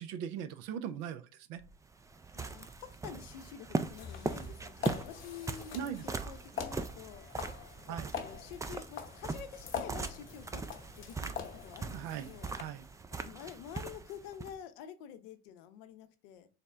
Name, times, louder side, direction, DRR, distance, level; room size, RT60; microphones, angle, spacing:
voice 1, 0.0-1.6 5.7-6.3 7.9-8.1 11.9-12.8, right 9 dB, 65° right, 0.5 m, -40 dB
sound 1, 1.6-14.6, right 3 dB, 10° right, 0.3 m, -40 dB
voice 2, 2.3-7.3 7.9-10.6 11.0-11.4 11.6-12.6 13.1-16.5, left 9 dB, 75° left, 0.5 m, -48 dB
sound 2, 3.9-12.6, left 7 dB, 45° left, 0.9 m, -44 dB
4.0 x 2.1 x 3.4 m
hypercardioid pair, 60°, 29 cm